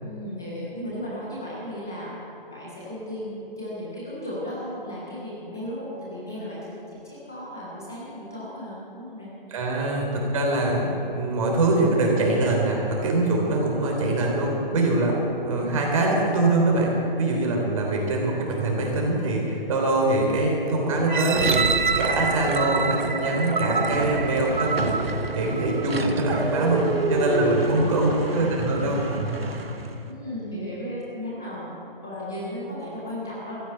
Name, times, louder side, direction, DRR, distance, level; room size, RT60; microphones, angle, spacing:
voice 1, 0.0-2.1 2.5-9.3 15.6-15.9 16.3-16.4 27.7-28.5 30.0-33.6, equal, 5° left, -7 dB, 0.4 m, -35 dB
voice 2, 9.5-15.2 15.4-21.7 22.0-26.8 27.1-29.4, right 2 dB, 35° right, -1 dB, 3.6 m, -23 dB
sound 1, 21.1-26.0 26.6-26.7, right 5 dB, 55° right, 1.1 m, -27 dB
sound 2, 21.4-30.1, right 3 dB, 90° right, 1.4 m, -30 dB
14.5 x 9.2 x 8.9 m, 2.9 s
hypercardioid pair, 155°, 29 cm